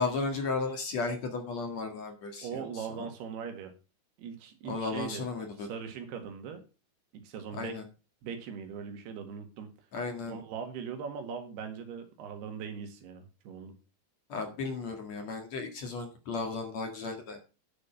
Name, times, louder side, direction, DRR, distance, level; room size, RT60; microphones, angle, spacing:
voice 1, 0.0-2.6 3.0-3.1 4.6-5.7 7.5-7.8 9.9-10.4 14.3-17.4, left 4 dB, 50° left, 4 dB, 2.7 m, -34 dB
voice 2, 2.4-3.7 4.2-5.3 5.6-6.6 7.1-7.8 8.2-9.8 10.3-13.7, right 7 dB, 85° right, 6 dB, 3.9 m, -40 dB
11.5 x 7.0 x 5.7 m, 0.33 s
omnidirectional pair, 4.5 m